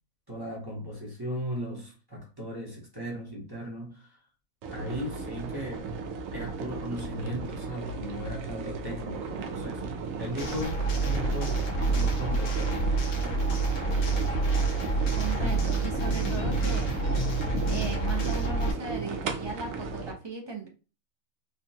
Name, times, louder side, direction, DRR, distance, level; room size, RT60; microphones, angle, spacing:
voice 1, 0.3-4.2 4.7-5.9 6.3-9.9 10.2-13.0 15.3-15.6, equal, 20° right, 0.8 m, -37 dB
sound 1, 4.6-20.1, right 4 dB, 70° right, 1.0 m, -35 dB
sound 2, 10.4-18.7, right 3 dB, 85° left, 1.4 m, -28 dB
voice 2, 15.1-16.9 17.7-20.7, right 3 dB, 45° right, 0.3 m, -37 dB
3.5 x 2.2 x 2.7 m
omnidirectional pair, 1.5 m